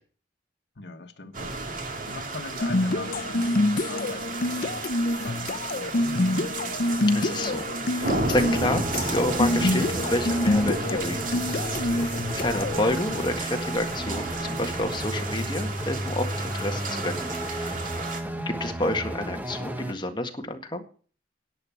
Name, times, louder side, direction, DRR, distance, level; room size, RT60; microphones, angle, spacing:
voice 1, 0.8-1.6 2.1-4.8 5.1-6.6 18.0-18.5, left 2 dB, 75° left, 1.3 m, -41 dB
sound 1, 1.3-18.2, right 3 dB, 50° right, 2.0 m, -33 dB
sound 2, 2.6-12.9, left 2 dB, 55° left, 0.7 m, -26 dB
voice 2, 7.1-17.1 17.5-17.8 18.5-20.8, left 1 dB, 25° left, 1.8 m, -30 dB
sound 3, 8.5-19.9, equal, 10° right, 1.3 m, -33 dB
11.0 x 8.3 x 7.3 m
head